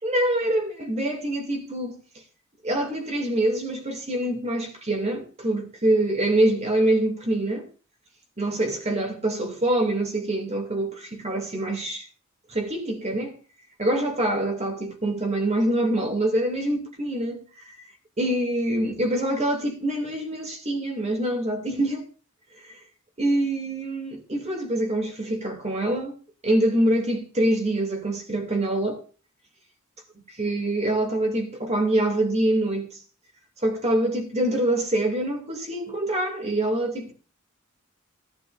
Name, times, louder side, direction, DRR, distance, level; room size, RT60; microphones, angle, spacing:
voice 1, 0.0-2.0 2.6-7.7 8.4-12.1 12.5-13.4 13.8-17.9 18.2-22.1 22.6-22.8 23.2-26.2 26.4-29.0 30.4-33.0 33.6-37.1, right 1 dB, 30° right, 2.6 m, -25 dB
16.5 x 11.5 x 2.6 m
head